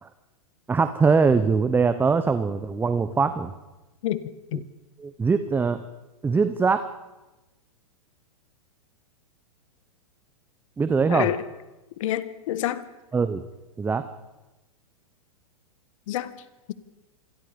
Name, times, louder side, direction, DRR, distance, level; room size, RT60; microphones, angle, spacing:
voice 1, 0.7-3.5 5.0-5.8 6.2-6.9 10.8-11.3 13.1-13.4 13.8-14.0, right 5 dB, 10° right, 11 dB, 0.8 m, -22 dB
voice 2, 12.0-12.8 16.1-16.3, left 13 dB, 60° left, 14 dB, 1.6 m, -27 dB
27.0 x 22.0 x 5.3 m, 1.1 s
hypercardioid pair, 130°, 19 cm